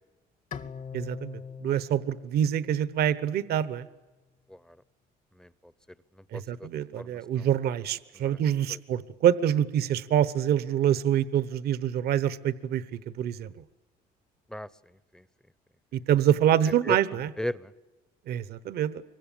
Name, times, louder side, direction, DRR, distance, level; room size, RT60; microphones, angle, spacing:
Bowed string instrument, 0.5-3.7, left 6 dB, 50° left, 1.3 m, -43 dB
voice 1, 0.9-3.9 6.3-13.5 15.9-17.3 18.3-19.0, right 10 dB, 70° right, 15 dB, 1.0 m, -26 dB
voice 2, 4.5-4.8 5.3-5.7 6.1-6.7 7.0-7.5 8.1-8.4 8.7-8.8 14.5-15.3 16.8-17.0 17.4-17.7, left 1 dB, 5° left, 17 dB, 0.8 m, -37 dB
25.0 x 23.0 x 8.9 m, 1.2 s
cardioid pair, 110°, 17 cm